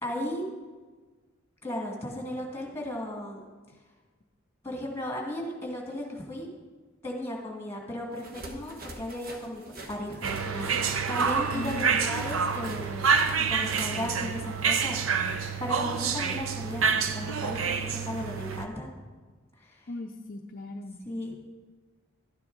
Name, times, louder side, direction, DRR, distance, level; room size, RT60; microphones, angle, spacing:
voice 1, 0.0-0.4 1.6-3.4 4.6-6.5 7.0-9.6 9.9-13.1 13.5-18.9 19.6-19.8 21.0-21.3, left 1 dB, 10° left, 0 dB, 2.0 m, -35 dB
sound 1, 8.2-13.9, right 2 dB, 45° right, 1.2 m, -44 dB
sound 2, 10.2-18.7, right 6 dB, 70° right, 0.6 m, -28 dB
voice 2, 11.5-12.1 19.9-21.0, left 1 dB, 40° left, 2 dB, 0.5 m, -38 dB
12.0 x 9.6 x 3.9 m, 1.4 s
head